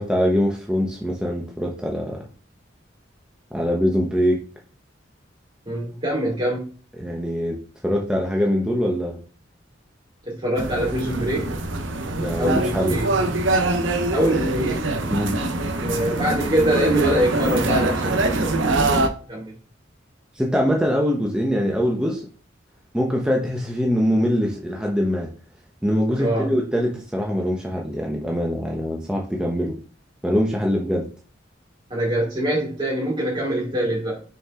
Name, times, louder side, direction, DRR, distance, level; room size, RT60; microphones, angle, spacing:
voice 1, 0.0-2.2 3.5-4.4 7.0-7.6 7.8-9.2 12.1-13.0 15.1-15.3 20.4-22.2 22.9-25.3 25.8-29.7 30.2-31.1, equal, 5° right, -2 dB, 1.0 m, -23 dB
voice 2, 5.7-6.6 10.2-11.5 12.4-13.2 14.1-14.8 15.8-18.9 19.3-19.5 26.2-26.5 31.9-34.2, right 1 dB, 30° right, -6 dB, 2.7 m, -24 dB
sound 1, 10.6-19.1, right 2 dB, 85° right, 0.9 m, -23 dB
6.3 x 4.6 x 3.7 m, 0.39 s
head